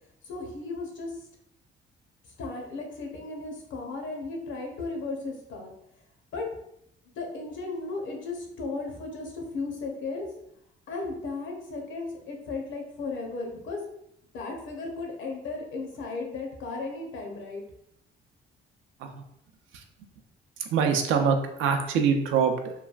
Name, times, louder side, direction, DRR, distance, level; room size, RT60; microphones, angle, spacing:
voice 1, 0.2-1.2 2.4-5.7 6.3-6.5 7.0-10.3 10.9-13.8 14.3-17.6, left 3 dB, 75° left, 1 dB, 0.8 m, -35 dB
voice 2, 20.6-22.7, right 6 dB, 85° right, 4 dB, 0.4 m, -24 dB
3.1 x 2.2 x 2.3 m, 0.77 s
cardioid pair, 90°, 20 cm